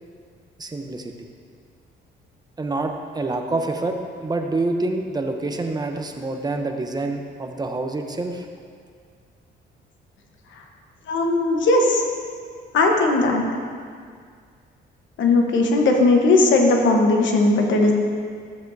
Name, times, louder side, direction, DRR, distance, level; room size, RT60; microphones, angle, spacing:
voice 1, 0.6-1.3 2.6-8.5, right 2 dB, 20° right, 4 dB, 0.8 m, -27 dB
voice 2, 11.1-12.0 12.7-13.4 15.2-17.9, left 2 dB, 70° left, 2 dB, 1.2 m, -18 dB
12.5 x 7.2 x 2.7 m, 2.1 s
cardioid pair, 90°, 20 cm